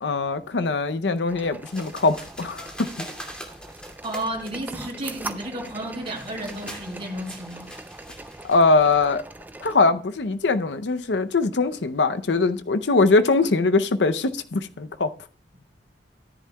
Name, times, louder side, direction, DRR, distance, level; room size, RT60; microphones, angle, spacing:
voice 1, 0.0-2.7 8.4-9.2 9.6-15.1, left 3 dB, 85° left, 0.6 m, -22 dB
sound 1, 1.3-9.8, right 2 dB, 10° right, 0.5 m, -41 dB
sound 2, 1.6-9.0, equal, 5° left, 2.3 m, -43 dB
voice 2, 4.0-7.7, right 1 dB, 35° right, 4.2 m, -32 dB
13.5 x 10.5 x 2.3 m
head